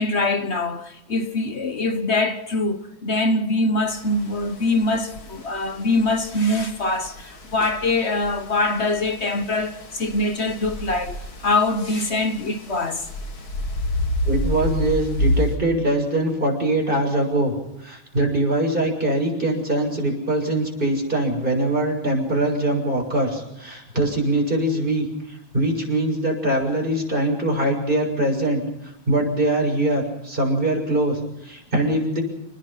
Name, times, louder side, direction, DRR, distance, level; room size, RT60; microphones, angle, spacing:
voice 1, 0.0-11.2 11.4-13.1, left 2 dB, 40° left, 1.3 m, -23 dB
sound 1, 3.9-15.5, left 1 dB, 80° left, 3.8 m, -30 dB
voice 2, 14.3-17.5 17.8-28.6 29.1-32.2, right 1 dB, 25° right, 7.1 m, -22 dB
28.5 x 20.0 x 5.8 m
omnidirectional pair, 2.2 m